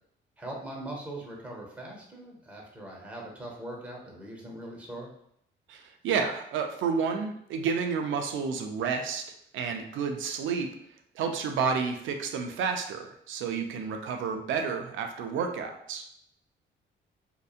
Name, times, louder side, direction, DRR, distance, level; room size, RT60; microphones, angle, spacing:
voice 1, 0.4-5.1, right 1 dB, 5° right, -1 dB, 0.8 m, -41 dB
voice 2, 5.7-9.2 9.5-10.7 11.2-16.0, right 6 dB, 75° right, 5 dB, 0.5 m, -30 dB
2.8 x 2.2 x 2.4 m, 0.69 s
cardioid pair, 90°, 20 cm